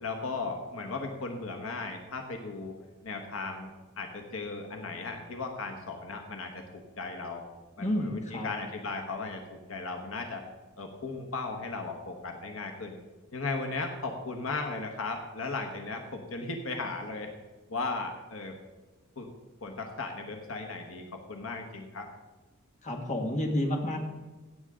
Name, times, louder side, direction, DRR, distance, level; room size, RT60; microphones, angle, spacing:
voice 1, 0.0-2.8 3.0-7.4 7.8-10.4 10.8-13.0 13.3-17.3 17.7-18.6 19.2-19.3 19.6-22.1, left 3 dB, 75° left, 3 dB, 1.3 m, -36 dB
voice 2, 7.8-8.5 22.8-24.0, left 1 dB, 35° left, 2 dB, 1.8 m, -30 dB
16.5 x 8.2 x 3.8 m, 1.2 s
head